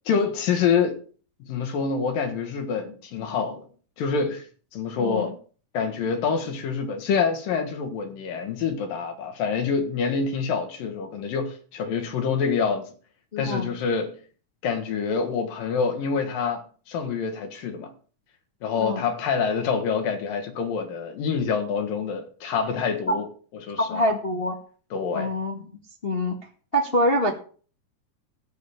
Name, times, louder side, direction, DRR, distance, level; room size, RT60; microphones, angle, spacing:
voice 1, 0.1-1.0 1.4-3.7 4.0-4.5 4.7-5.3 5.7-12.9 13.4-14.1 14.6-17.9 18.6-23.3 23.6-24.1 24.9-25.3, left 5 dB, 85° left, 3.3 m, -26 dB
voice 2, 5.0-5.3 13.3-13.7 18.8-19.1 23.1-23.2 23.8-24.5 25.1-25.6 26.0-26.4 26.7-27.3, equal, 30° left, 1.1 m, -25 dB
15.0 x 5.2 x 8.7 m
omnidirectional pair, 3.9 m